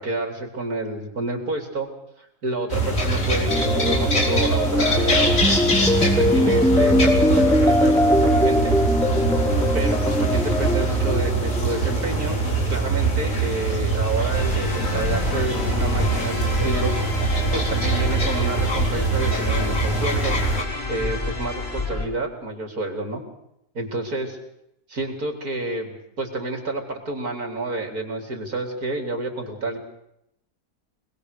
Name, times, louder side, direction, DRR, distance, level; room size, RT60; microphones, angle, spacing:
voice 1, 0.0-1.9 2.2-5.9 6.2-8.8 9.7-20.5 20.9-23.2 23.7-24.4 24.9-29.8, right 2 dB, 70° right, 3 dB, 4.1 m, -29 dB
sound 1, 2.7-20.6, right 2 dB, 55° left, 4.8 m, -23 dB
sound 2, 3.5-12.1, left 1 dB, 5° left, 0.4 m, -21 dB
sound 3, 14.3-22.1, left 3 dB, 40° left, 3.4 m, -29 dB
25.5 x 20.5 x 6.8 m, 0.80 s
omnidirectional pair, 1.6 m